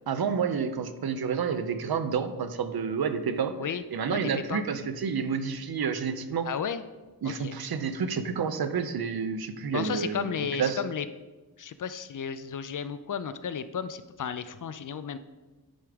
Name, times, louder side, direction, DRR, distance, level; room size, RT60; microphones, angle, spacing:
voice 1, 0.1-3.5 3.9-6.5 7.2-10.3 10.6-10.8, right 6 dB, 70° right, 10 dB, 0.7 m, -29 dB
voice 2, 4.1-4.6 6.4-6.8 7.2-7.6 9.7-11.1 11.6-15.2, left 7 dB, 55° left, 12 dB, 0.5 m, -33 dB
10.0 x 5.0 x 3.5 m, 1.2 s
wide cardioid pair, 95°, 39 cm